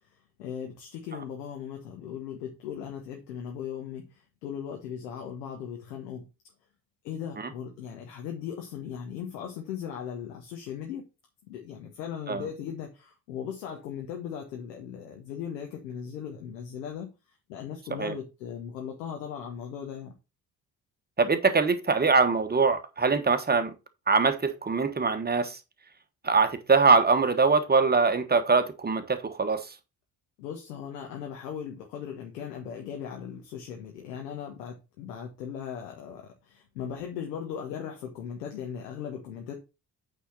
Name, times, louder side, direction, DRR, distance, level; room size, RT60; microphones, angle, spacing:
voice 1, 0.4-4.1 4.4-6.3 7.0-11.1 11.5-17.1 17.5-20.1 30.4-39.5, left 8 dB, 70° left, 1.4 m, -38 dB
voice 2, 21.2-23.7 24.1-25.6 26.2-29.7, right 4 dB, 20° right, 1.3 m, -23 dB
8.4 x 4.1 x 5.5 m
figure-of-eight pair, 45°, 49 cm